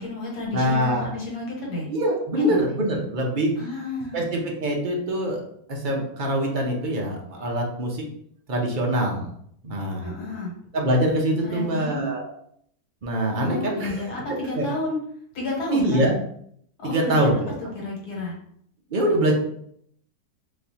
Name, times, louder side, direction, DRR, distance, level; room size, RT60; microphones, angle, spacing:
voice 1, 0.0-1.9 2.4-2.6 3.6-4.2 10.0-10.5 11.5-12.1 13.2-15.0 15.3-16.0 16.8-17.4 17.7-18.4, left 2 dB, 80° left, -3 dB, 1.8 m, -31 dB
voice 2, 0.5-1.1 1.9-3.5 4.1-5.4 5.7-8.0 8.5-9.2 9.6-10.1 10.7-12.3 13.0-14.1 14.5-14.6 15.7-16.2 16.8-17.5 18.9-19.3, right 1 dB, 50° right, 0 dB, 0.6 m, -24 dB
4.1 x 2.7 x 2.8 m, 0.68 s
omnidirectional pair, 1.7 m